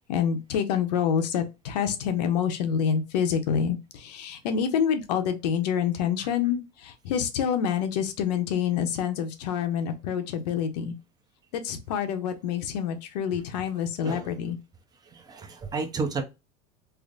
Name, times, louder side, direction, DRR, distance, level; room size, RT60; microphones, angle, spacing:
voice 1, 0.1-10.9 11.5-14.6, left 8 dB, 90° left, 0.8 m, -27 dB
voice 2, 14.0-14.4 15.1-16.2, right 4 dB, 20° right, 0.7 m, -32 dB
3.3 x 2.1 x 3.7 m
supercardioid pair, 130°, 21 cm